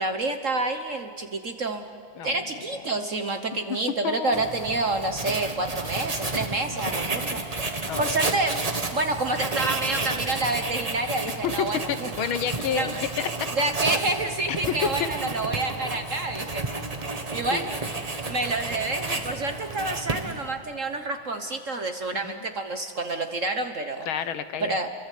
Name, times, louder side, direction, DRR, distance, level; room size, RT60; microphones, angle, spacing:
voice 1, 0.0-1.9 2.2-7.4 8.0-8.6 8.9-12.1 12.7-13.0 13.5-16.9 17.3-17.7 18.3-24.1 24.6-24.9, right 2 dB, 45° right, 6 dB, 1.2 m, -28 dB
voice 2, 4.0-4.4 7.9-8.1 11.4-11.5 11.9-12.9 13.2-13.5 14.5-15.1 17.5-17.7 22.1-22.5 24.1-24.7, left 8 dB, 70° left, 11 dB, 1.8 m, -30 dB
Writing, 4.3-20.5, right 3 dB, 20° right, 1.2 m, -31 dB
29.5 x 23.5 x 8.4 m, 2.2 s
omnidirectional pair, 2.4 m